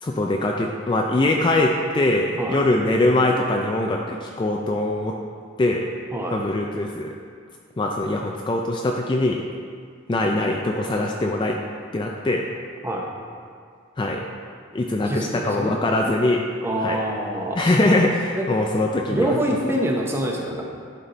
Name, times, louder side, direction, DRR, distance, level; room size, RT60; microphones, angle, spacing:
voice 1, 0.0-5.2 5.6-5.9 6.3-7.1 7.8-9.4 10.1-11.6 11.9-12.5 14.0-14.3 14.7-16.4 16.8-17.0 17.6-19.3 19.7-19.8, left 2 dB, 20° left, 1 dB, 0.3 m, -22 dB
voice 2, 15.0-15.8 16.6-18.5 19.1-20.6, right 1 dB, 10° right, -1 dB, 0.7 m, -26 dB
11.0 x 4.2 x 4.1 m, 2.1 s
head